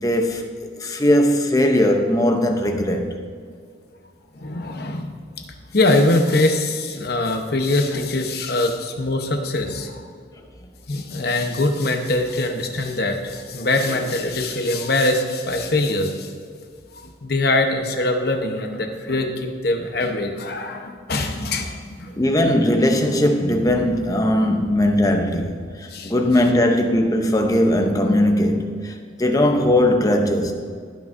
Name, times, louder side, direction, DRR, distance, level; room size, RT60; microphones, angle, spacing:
voice 1, 0.0-0.5 0.8-3.1 22.2-30.5, left 1 dB, 20° left, 0.7 m, -19 dB
voice 2, 4.4-5.1 5.7-10.1 10.9-16.3 17.2-22.1 24.4-24.6 25.9-26.1, left 2 dB, 55° left, 0.9 m, -22 dB
18.0 x 6.2 x 2.6 m
head